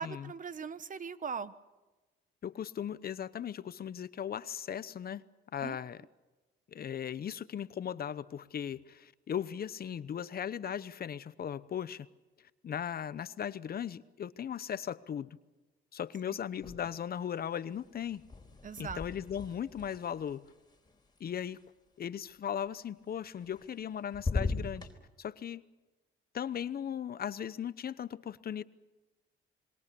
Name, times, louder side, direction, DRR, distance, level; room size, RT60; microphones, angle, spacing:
voice 1, 0.0-1.5 5.6-5.8 16.3-16.4 18.6-19.0, right 6 dB, 40° right, 15 dB, 1.1 m, -39 dB
voice 2, 2.4-5.2 5.5-6.0 6.7-12.1 12.6-15.4 15.9-18.2 18.8-20.5 21.2-21.6 22.0-24.9 25.2-25.6 26.3-28.6, left 9 dB, 50° left, 16 dB, 0.9 m, -37 dB
sound 1, 16.5-17.2 17.5-21.6 23.2-23.9 24.1-24.9, left 3 dB, 20° left, 4.2 m, -39 dB
27.0 x 22.5 x 7.0 m, 1.1 s
cardioid pair, 90°, 20 cm